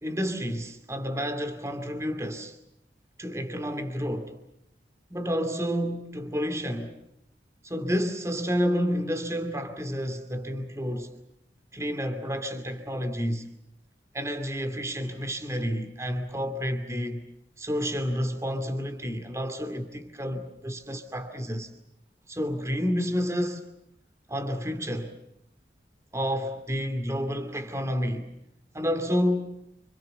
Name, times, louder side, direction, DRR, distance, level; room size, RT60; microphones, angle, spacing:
voice 1, 0.0-2.6 3.2-4.4 5.1-7.0 7.6-11.1 11.7-13.5 14.1-17.2 17.6-21.7 22.3-23.7 24.3-25.2 26.1-28.3 28.7-29.7, equal, 15° right, 2.5 m, -30 dB
29.5 x 27.0 x 6.8 m
head